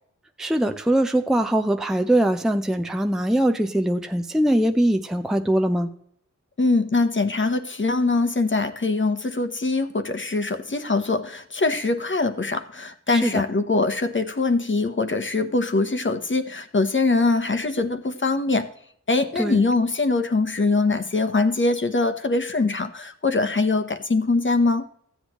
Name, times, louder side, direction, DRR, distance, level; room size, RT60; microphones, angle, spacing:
voice 1, 0.4-5.9 13.1-13.4 19.4-19.6, right 1 dB, ahead, 0.6 m, -22 dB
voice 2, 6.6-18.7 19.1-24.8, left 3 dB, 40° left, 1.0 m, -23 dB
15.0 x 8.1 x 3.0 m
wide cardioid pair, 65°, 31 cm